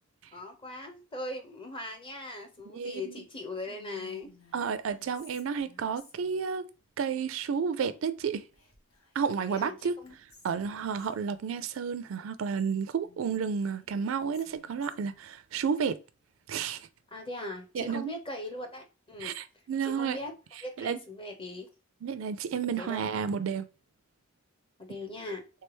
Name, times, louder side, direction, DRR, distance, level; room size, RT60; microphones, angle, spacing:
voice 1, 0.3-4.3 9.5-10.1 17.1-19.3 19.8-20.3 20.6-21.7 22.8-23.3 24.8-25.4, left 2 dB, 25° left, 0.8 m, -40 dB
voice 2, 2.7-3.1 4.5-6.7 7.0-8.4 9.2-10.0 10.4-16.0 16.5-16.9 17.7-18.1 19.2-20.2 20.8-21.0 22.0-23.6, right 6 dB, 70° right, 0.4 m, -31 dB
Whispering, 3.7-6.5 8.5-9.3 9.6-9.7 10.0-11.2 13.0-15.2, left 2 dB, 80° left, 1.2 m, -57 dB
3.3 x 3.3 x 3.0 m
head